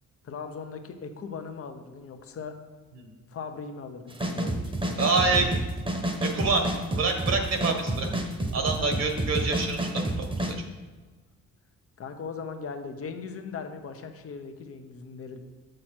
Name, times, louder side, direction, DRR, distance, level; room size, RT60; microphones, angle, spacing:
voice 1, 0.2-2.6 3.3-5.7 8.8-8.9 12.0-15.4, left 5 dB, 50° left, 6 dB, 1.0 m, -39 dB
sound 1, 4.1-10.5, right 1 dB, 15° right, 1.1 m, -29 dB
voice 2, 5.0-5.6 6.2-6.7 7.0-8.1 8.5-10.6, right 3 dB, 60° right, 4 dB, 1.5 m, -26 dB
7.3 x 6.4 x 4.4 m, 1.3 s
cardioid pair, 90°, 30 cm